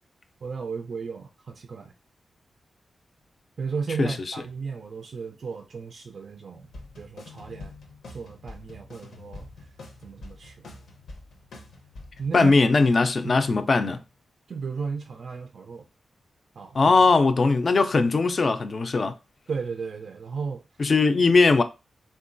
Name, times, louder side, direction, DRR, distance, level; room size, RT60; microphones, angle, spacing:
voice 1, 0.4-1.9 3.6-6.7 7.0-7.7 8.1-9.7 10.0-10.7 12.2-12.5 13.2-13.4 14.5-15.9 16.6-16.9 19.5-20.6, right 5 dB, 55° right, 0.3 m, -34 dB
sound 1, 6.6-12.5, left 2 dB, 85° left, 0.7 m, -45 dB
voice 2, 12.3-14.0 16.7-19.1 20.8-21.6, left 3 dB, 40° left, 0.3 m, -20 dB
3.6 x 2.2 x 2.5 m
wide cardioid pair, 140°, 0 cm